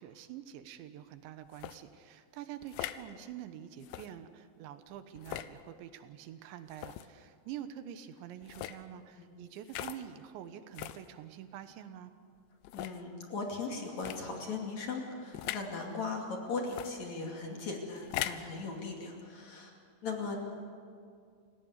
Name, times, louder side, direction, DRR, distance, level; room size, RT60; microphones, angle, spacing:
voice 1, 0.0-12.1, right 10 dB, 75° right, 10 dB, 3.2 m, -46 dB
sound 1, 1.5-1.8 2.6-3.0 3.8-4.1 5.2-5.5 6.7-7.1 8.4-8.8 9.7-10.0 10.7-11.0 11.7-11.8 12.6-13.0 14.0-14.2 15.3-15.7 16.7-16.9 18.0-18.5, left 14 dB, 80° left, 3.0 m, -39 dB
voice 2, 12.7-19.7 20.0-20.4, left 4 dB, 45° left, 1 dB, 3.2 m, -38 dB
29.0 x 17.5 x 8.2 m, 2.2 s
omnidirectional pair, 5.5 m